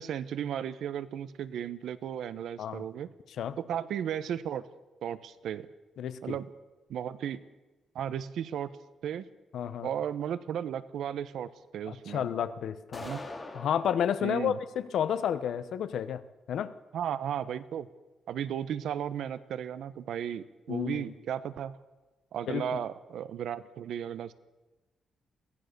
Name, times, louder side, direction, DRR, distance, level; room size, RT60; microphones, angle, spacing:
voice 1, 0.0-3.1 3.6-4.6 5.0-5.7 6.2-6.5 6.9-7.4 7.9-8.8 9.0-9.2 9.8-12.3 13.0-13.2 14.2-14.6 16.9-17.9 18.3-21.8 22.3-24.3, right 9 dB, 70° right, 14 dB, 1.1 m, -35 dB
voice 2, 6.0-6.4 9.5-9.9 11.9-13.1 13.5-16.2 16.5-16.7 20.7-21.0 22.5-22.8, left 9 dB, 65° left, 13 dB, 1.1 m, -31 dB
sound 1, 12.9-13.9, left 2 dB, 20° left, 2.7 m, -41 dB
22.5 x 17.0 x 6.9 m, 1.1 s
wide cardioid pair, 170°, 0 cm